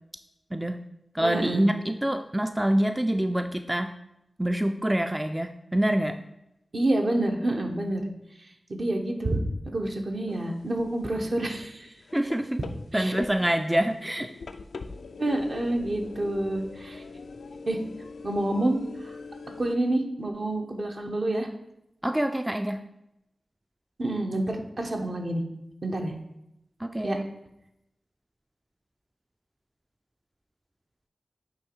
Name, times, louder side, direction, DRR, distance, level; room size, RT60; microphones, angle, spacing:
voice 1, 0.5-0.8 1.1-3.9 4.4-6.2 12.1-12.6 12.9-14.3 22.0-22.8 26.8-27.2, right 1 dB, 15° right, 7 dB, 0.4 m, -26 dB
voice 2, 1.2-1.7 6.7-8.0 8.7-9.4 9.7-11.9 12.9-13.1 15.2-17.0 17.7-17.8 18.2-19.1 19.6-21.5 24.0-25.4 25.8-26.1 27.0-27.2, right 1 dB, 60° right, 2 dB, 1.0 m, -28 dB
sound 1, 10.3-10.7 11.0-19.7, left 4 dB, 90° left, 0.4 m, -42 dB
9.0 x 3.1 x 4.5 m, 0.85 s
cardioid pair, 45°, 0 cm